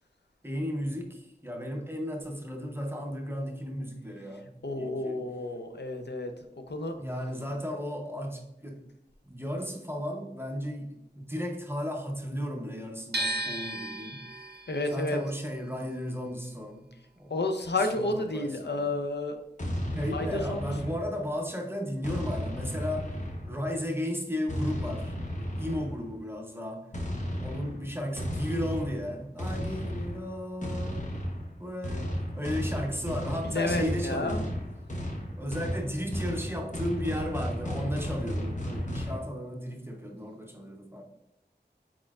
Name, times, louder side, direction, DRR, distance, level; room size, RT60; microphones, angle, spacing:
voice 1, 0.4-5.2 7.0-8.8 9.2-14.5 14.9-16.8 17.2-17.3 17.9-19.0 19.9-23.2 23.5-26.9 27.4-31.1 31.6-34.5 35.4-41.0, equal, 15° right, 2 dB, 0.7 m, -35 dB
voice 2, 4.6-6.3 6.7-6.9 14.7-15.2 17.3-19.4 20.0-20.7 33.4-34.4, left 2 dB, 75° left, 6 dB, 0.6 m, -31 dB
sound 1, 13.1-19.2 19.4-20.7, right 2 dB, 70° right, 0.5 m, -38 dB
sound 2, 19.6-21.4 22.0-23.8 24.5-26.1 26.9-39.2, equal, 45° left, 0.9 m, -34 dB
4.4 x 4.2 x 2.4 m, 0.87 s
wide cardioid pair, 45°, 18 cm